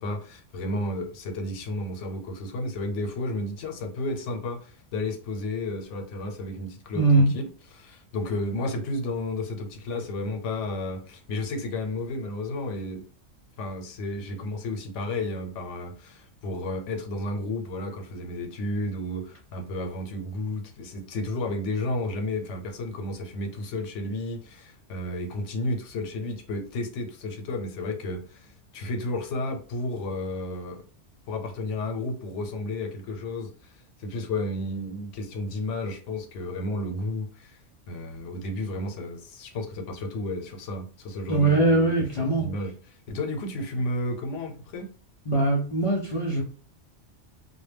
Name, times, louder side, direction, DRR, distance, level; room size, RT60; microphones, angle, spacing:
voice 1, 0.0-13.0 13.6-30.8 31.3-37.6 37.9-42.7 43.1-44.9, left 2 dB, 90° left, 0.9 m, -32 dB
voice 2, 7.0-7.3 41.3-42.5 45.3-46.4, right 2 dB, 55° left, 0.3 m, -21 dB
2.1 x 2.1 x 3.2 m
omnidirectional pair, 1.2 m